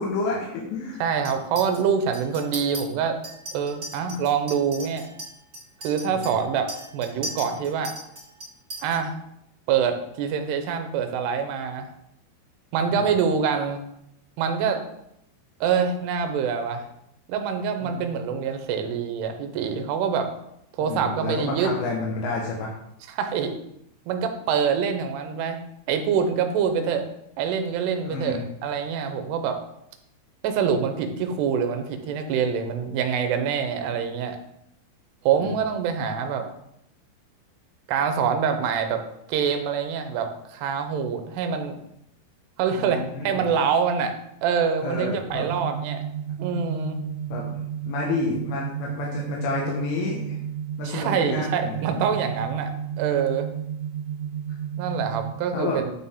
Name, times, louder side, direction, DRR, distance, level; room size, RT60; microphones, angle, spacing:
voice 1, 0.0-1.0 4.1-4.2 6.1-6.4 12.9-13.1 17.8-18.1 20.8-22.7 28.0-28.5 35.4-35.6 42.7-43.4 44.8-45.5 47.3-47.6 47.8-50.4 50.8-52.1 55.5-55.8, left 3 dB, 85° left, -2 dB, 3.2 m, -30 dB
voice 2, 1.0-3.2 3.5-5.1 5.8-7.9 8.8-9.2 9.7-11.9 12.7-13.8 14.4-14.8 15.6-16.9 17.3-20.3 20.8-21.7 23.1-23.5 24.1-25.6 25.9-27.0 27.4-29.6 30.4-34.4 35.2-36.5 37.9-39.0 39.3-41.8 42.6-44.1 44.4-46.0 46.4-47.0 50.8-52.7 53.0-53.5 54.8-55.9, right 7 dB, 85° right, 7 dB, 2.7 m, -25 dB
Chink clink, 1.2-1.8 2.1-2.8 3.2-9.0, right 1 dB, 35° right, 2.4 m, -38 dB
sound 1, 45.3-55.3, right 9 dB, 60° right, 2.4 m, -32 dB
9.1 x 4.5 x 3.5 m, 0.77 s
omnidirectional pair, 4.9 m